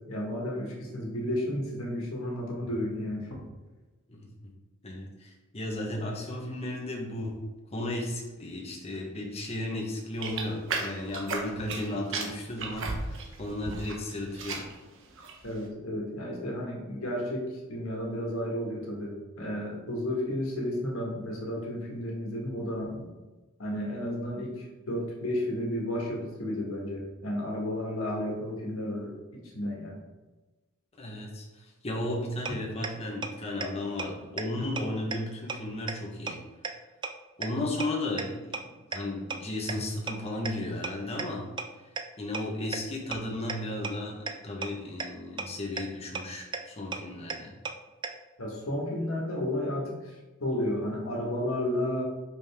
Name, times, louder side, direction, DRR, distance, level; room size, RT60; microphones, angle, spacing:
voice 1, 0.1-3.4 15.4-23.1 23.6-30.0 48.4-52.0, left 1 dB, 80° left, -1 dB, 1.7 m, -32 dB
voice 2, 4.1-4.5 4.8-7.4 7.7-14.7 31.0-36.4 37.4-41.5 42.2-47.5, left 1 dB, 30° left, -1 dB, 1.2 m, -34 dB
sound 1, 10.2-11.9 12.1-14.0 14.3-14.8 15.2-15.5, right 4 dB, 65° right, 1.0 m, -34 dB
sound 2, 32.4-32.5 32.8-32.9 33.2-33.3 33.6-33.7 34.0-34.1 34.4-34.5 34.8-34.9 35.1-35.2 35.5-35.6 35.9-36.0 36.3-36.4 36.6-36.7 37.0-37.1 37.4-37.5 37.8-37.9 38.2-38.3 38.5-38.6 38.9-39.0 39.3-39.4 39.7-39.8 40.1-40.2 40.4-40.5 40.8-40.9 41.2-41.3 41.6-41.7 42.0-42.1 42.3-42.4 42.7-42.8 43.1-43.2 43.5-43.6 43.8-43.9 44.3-44.4 44.6-44.7 45.0-45.1 45.4-45.5 45.8-45.9 46.1-46.2 46.5-46.6 46.9-47.0 47.3-47.4 47.6-47.7 48.0-48.1, right 5 dB, 20° right, 0.4 m, -32 dB
5.7 x 5.1 x 3.6 m, 1.2 s
head